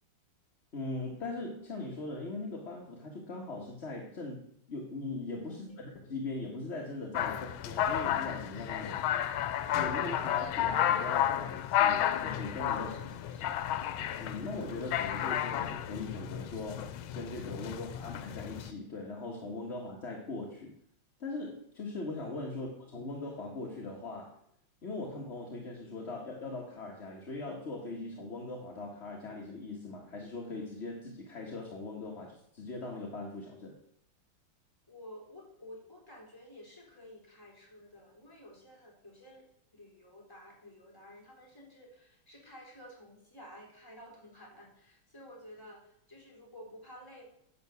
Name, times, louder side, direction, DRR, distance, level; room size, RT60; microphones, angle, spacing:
voice 1, 0.7-8.9 9.7-12.9 14.2-20.7 21.2-24.4 24.8-33.8, left 2 dB, 35° left, 0 dB, 1.6 m, -40 dB
voice 2, 5.5-5.8 8.8-9.1 12.7-13.5 34.9-47.2, equal, 10° left, -2 dB, 3.7 m, -52 dB
sound 1, 7.1-18.7, left 10 dB, 90° left, 1.5 m, -32 dB
10.5 x 7.1 x 7.1 m, 0.70 s
omnidirectional pair, 2.2 m